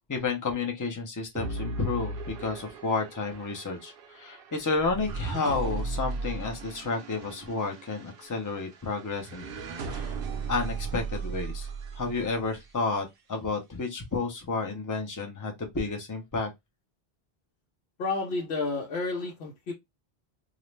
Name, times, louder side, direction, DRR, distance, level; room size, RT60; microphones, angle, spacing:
voice 1, 0.1-9.5 9.9-10.1 10.5-11.7 11.9-16.5, left 3 dB, 20° left, 0.5 m, -31 dB
sound 1, 1.4-12.7, right 3 dB, 65° right, 0.8 m, -37 dB
voice 2, 18.0-19.7, left 3 dB, 80° left, 0.9 m, -31 dB
2.4 x 2.1 x 3.0 m
omnidirectional pair, 1.1 m